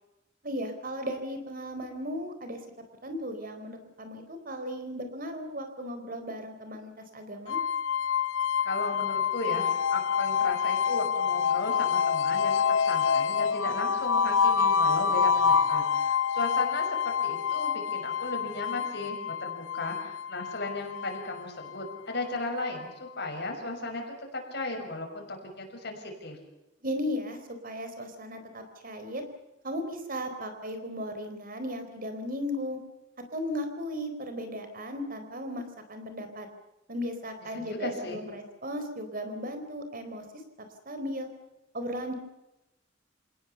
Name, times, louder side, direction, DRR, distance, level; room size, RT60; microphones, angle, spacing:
voice 1, 0.4-2.6 3.0-7.6 26.8-27.4 27.6-29.2 29.6-32.8 33.3-35.6 35.9-36.5 36.9-40.2 40.9-41.3 41.7-42.1, equal, 50° right, 8 dB, 4.0 m, -36 dB
sound 1, 7.5-22.4, left 6 dB, 85° left, 0.8 m, -27 dB
voice 2, 8.6-24.0 24.3-26.4 37.5-38.2, left 2 dB, 60° left, 2 dB, 6.0 m, -36 dB
28.5 x 18.5 x 6.9 m, 0.96 s
head